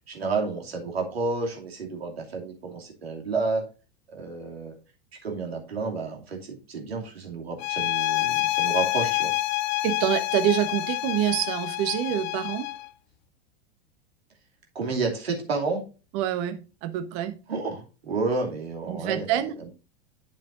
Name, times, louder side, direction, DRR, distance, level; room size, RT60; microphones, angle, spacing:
voice 1, 0.1-3.6 4.1-4.7 5.2-9.3 14.7-15.8 17.5-19.7, right 3 dB, 80° right, 2.7 m, -30 dB
sound 1, 7.6-12.9, left 17 dB, 50° left, 0.6 m, -27 dB
voice 2, 9.8-12.7 16.1-17.3 18.9-19.5, right 11 dB, 45° right, 1.2 m, -26 dB
8.9 x 7.0 x 2.6 m
figure-of-eight pair, 90°, 30 cm